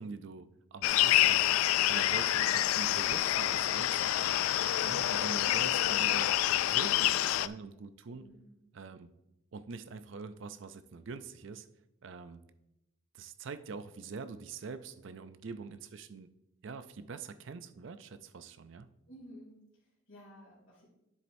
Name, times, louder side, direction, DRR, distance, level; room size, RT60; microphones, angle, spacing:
voice 1, 0.0-1.5 1.9-4.5 4.8-6.3 6.6-8.3 8.7-9.1 9.5-11.7 12.0-12.4 13.1-16.3 16.6-18.9, right 4 dB, 60° right, 12 dB, 0.5 m, -44 dB
sound 1, 0.8-7.5, left 13 dB, 85° left, 0.3 m, -27 dB
voice 2, 19.1-20.9, equal, 60° left, -7 dB, 2.8 m, -53 dB
9.8 x 7.5 x 2.7 m, 0.91 s
head